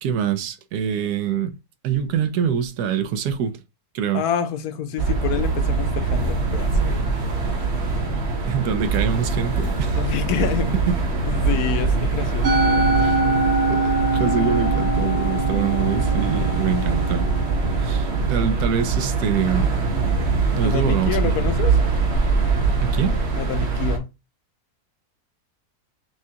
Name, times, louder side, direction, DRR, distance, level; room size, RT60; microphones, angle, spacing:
voice 1, 0.0-1.6 1.8-3.6 3.9-4.2 8.5-10.0 12.9-13.2 13.7-17.3 17.8-19.7 20.6-21.6 22.8-23.2, right 8 dB, 85° right, 1.2 m, -25 dB
voice 2, 4.1-7.1 9.9-10.8 11.3-13.4 20.6-21.8 23.4-24.1, left 9 dB, 75° left, 1.1 m, -28 dB
sound 1, 5.0-24.0, right 4 dB, 50° right, 1.2 m, -23 dB
Musical instrument, 12.4-18.8, right 2 dB, 70° right, 0.6 m, -24 dB
6.1 x 2.3 x 2.8 m
omnidirectional pair, 1.6 m